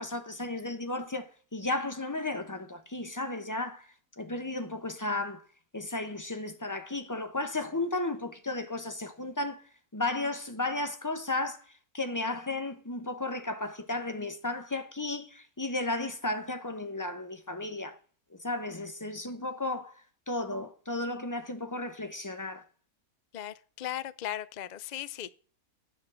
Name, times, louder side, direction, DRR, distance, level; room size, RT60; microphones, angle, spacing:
voice 1, 0.0-5.4 5.7-9.6 9.9-18.0 18.3-22.6, left 2 dB, 15° left, 0.7 m, -34 dB
voice 2, 23.3-25.3, left 12 dB, 80° left, 0.4 m, -37 dB
9.9 x 7.6 x 6.2 m
omnidirectional pair, 1.6 m